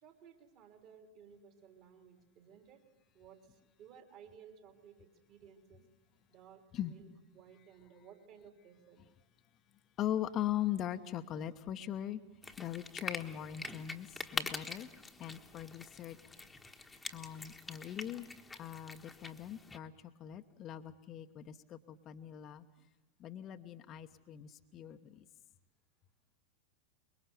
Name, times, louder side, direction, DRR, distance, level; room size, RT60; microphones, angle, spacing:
voice 1, 0.0-2.8 3.1-5.9 6.3-9.0, right 7 dB, 40° right, 3 dB, 3.2 m, -58 dB
voice 2, 10.0-12.2 12.6-14.9 15.2-16.2 17.1-18.3 18.6-19.9 20.2-22.6 23.2-25.2, left 11 dB, 30° left, 7 dB, 1.0 m, -40 dB
sound 1, 12.4-19.8, left 3 dB, 10° left, 1.3 m, -45 dB
24.5 x 22.0 x 7.0 m, 1.1 s
figure-of-eight pair, 90°, 0 cm